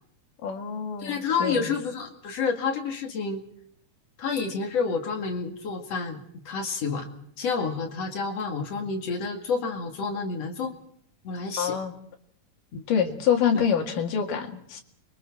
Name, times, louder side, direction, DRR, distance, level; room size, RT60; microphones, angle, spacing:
voice 1, 0.4-1.8 11.6-11.9 12.9-14.8, left 7 dB, 80° left, 4 dB, 3.6 m, -26 dB
voice 2, 1.0-3.4 4.2-7.1 7.4-10.7 11.2-11.8 12.7-13.2 13.5-13.7, left 5 dB, 55° left, 3 dB, 3.1 m, -29 dB
29.5 x 23.0 x 4.5 m, 0.65 s
omnidirectional pair, 3.7 m